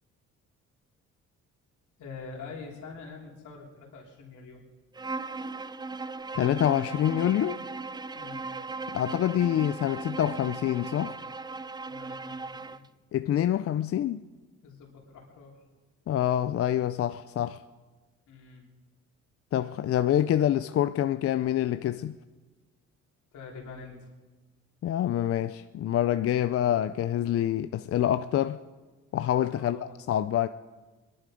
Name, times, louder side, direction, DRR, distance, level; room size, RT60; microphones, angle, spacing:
voice 1, 2.0-4.6 8.1-8.5 11.9-12.8 14.6-15.5 18.3-18.6 23.3-24.1 29.6-29.9, left 4 dB, 80° left, 3.4 m, -45 dB
Bowed string instrument, 4.9-12.9, right 3 dB, 15° right, 0.4 m, -37 dB
voice 2, 6.3-7.6 8.9-11.2 13.1-14.2 16.1-17.6 19.5-22.2 24.8-28.6 29.1-30.5, left 11 dB, 50° left, 0.5 m, -26 dB
21.5 x 11.0 x 5.1 m
cardioid pair, 90°, 30 cm